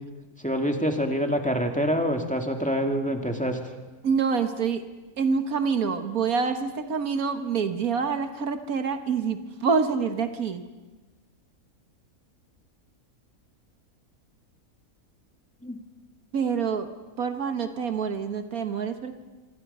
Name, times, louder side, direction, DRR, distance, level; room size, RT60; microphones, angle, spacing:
voice 1, 0.4-3.6 15.6-15.8, equal, 5° left, 3 dB, 2.0 m, -26 dB
voice 2, 4.0-4.9 5.2-10.6 16.3-16.9 17.2-19.2, right 5 dB, 75° right, 8 dB, 1.8 m, -26 dB
26.0 x 25.5 x 5.5 m, 1.2 s
omnidirectional pair, 1.5 m